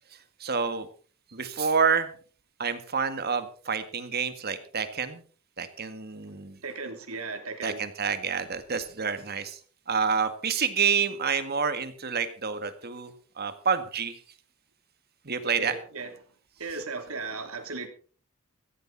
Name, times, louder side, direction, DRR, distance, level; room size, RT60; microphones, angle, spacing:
voice 1, 0.4-0.9 1.3-2.1 2.6-5.2 5.6-6.6 7.6-9.6 9.9-14.1 15.3-15.8, right 6 dB, 45° right, 1.8 m, -28 dB
voice 2, 6.6-7.8 15.4-16.1 16.6-17.9, right 4 dB, 75° right, 3.0 m, -36 dB
16.0 x 15.0 x 4.1 m
head